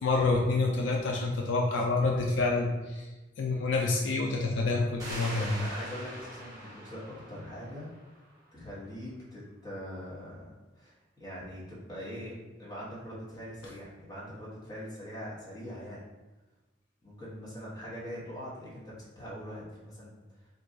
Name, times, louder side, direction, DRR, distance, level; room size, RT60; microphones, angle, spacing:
voice 1, 0.0-3.1 3.4-5.6, left 3 dB, 70° left, 0 dB, 0.3 m, -28 dB
sound 1, 5.0-8.4, right 1 dB, 20° right, 0.8 m, -42 dB
voice 2, 5.1-7.9 8.5-10.5 10.7-16.0 17.0-20.2, equal, 20° left, -7 dB, 0.9 m, -42 dB
2.5 x 2.3 x 3.8 m, 1.1 s
head